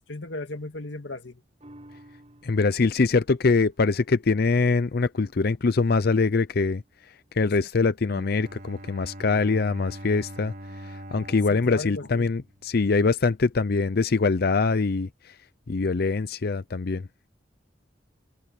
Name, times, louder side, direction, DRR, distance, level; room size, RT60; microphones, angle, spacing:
voice 1, 0.1-1.4 11.5-12.3, left 2 dB, 80° left, 1.9 m, -36 dB
sound 1, 1.6-8.3 8.7-8.8, right 1 dB, 35° right, 7.4 m, -56 dB
voice 2, 2.4-6.8 7.3-10.5 10.8-15.3 15.7-17.1, left 4 dB, 55° left, 0.6 m, -23 dB
Bowed string instrument, 8.1-13.0, equal, 55° right, 5.5 m, -43 dB
head